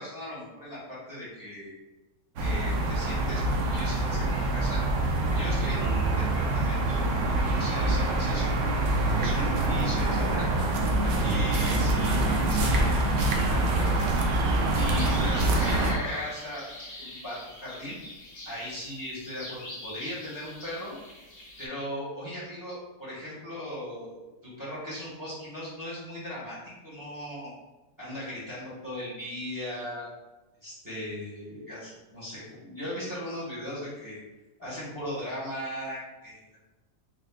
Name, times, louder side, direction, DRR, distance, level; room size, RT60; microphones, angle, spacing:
voice 1, 0.0-1.7 2.4-4.8 5.3-7.0 7.3-10.5 11.0-14.0 14.7-18.0 18.4-21.0 21.6-27.5 28.0-30.1 30.6-34.2 34.6-36.6, left 1 dB, 10° right, -9 dB, 1.3 m, -38 dB
sound 1, 2.4-15.9, right 2 dB, 75° right, 0.7 m, -25 dB
sound 2, 14.9-21.7, left 2 dB, 60° left, 0.5 m, -41 dB
3.7 x 3.0 x 2.4 m, 1.1 s
omnidirectional pair, 1.8 m